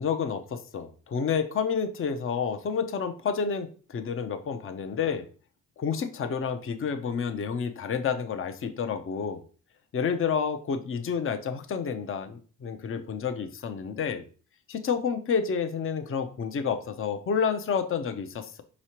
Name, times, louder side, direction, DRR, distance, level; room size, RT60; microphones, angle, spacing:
voice 1, 0.0-5.3 5.8-9.4 9.9-14.2 14.7-18.6, left 6 dB, 40° left, 7 dB, 0.6 m, -29 dB
4.8 x 3.0 x 2.9 m, 0.39 s
supercardioid pair, 60°, 33 cm